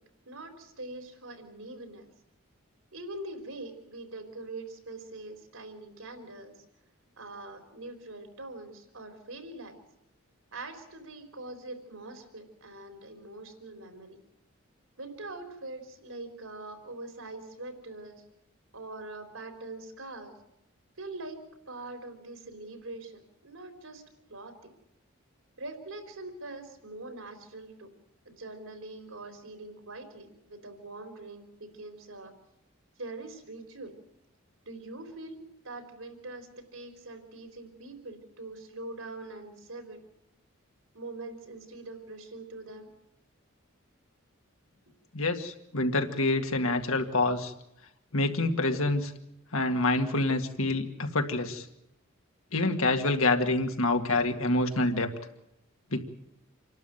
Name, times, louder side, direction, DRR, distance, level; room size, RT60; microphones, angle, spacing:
voice 1, 0.3-2.1 2.9-6.6 7.2-9.8 10.5-14.2 15.0-18.2 18.7-20.3 21.0-21.4 21.7-23.1 23.4-24.0 24.3-24.5 25.6-27.9 28.2-32.3 33.0-33.9 34.6-35.4 35.6-40.0 40.9-42.9, right 2 dB, 80° right, 6 dB, 4.0 m, -43 dB
voice 2, 45.1-47.5 48.1-49.1 49.5-51.7 52.5-55.1 55.9-56.0, left 2 dB, 85° left, 5 dB, 2.1 m, -27 dB
27.5 x 12.0 x 9.1 m, 0.83 s
head